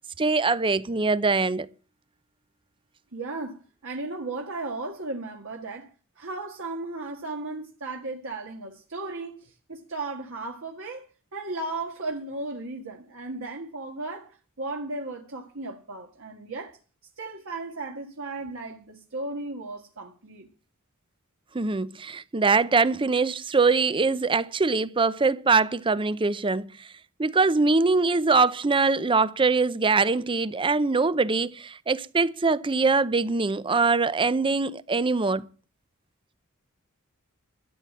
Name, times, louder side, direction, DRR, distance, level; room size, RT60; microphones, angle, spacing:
voice 1, 0.2-1.7 21.5-26.9 27.2-35.5, right 4 dB, 25° right, 0.6 m, -23 dB
voice 2, 3.1-5.9 6.2-11.1 11.3-16.8 17.2-20.5, right 2 dB, 65° right, 1.7 m, -35 dB
13.0 x 7.5 x 8.4 m
head